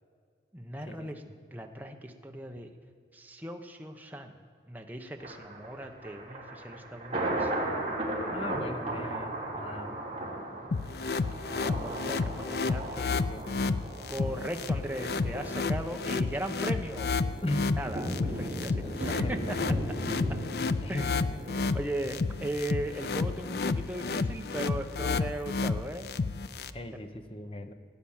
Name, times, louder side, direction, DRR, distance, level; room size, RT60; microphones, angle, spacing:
voice 1, 0.5-1.2 1.5-2.7 3.1-4.3 4.7-7.5 11.5-12.9 14.1-17.2 17.8-19.6 20.3-20.4 20.9-26.1, right 1 dB, 10° right, 3 dB, 0.9 m, -38 dB
Thunder, 5.2-22.3 22.7-22.8, right 1 dB, 30° right, 3.2 m, -37 dB
voice 2, 8.3-10.0 13.0-13.8 16.0-16.2 17.4-17.7 18.8-19.9 20.8-21.1 26.7-27.7, left 1 dB, 30° left, 7 dB, 0.9 m, -38 dB
sound 1, 10.7-26.7, left 4 dB, 60° left, 0.5 m, -31 dB
17.0 x 9.2 x 7.2 m, 2.3 s
head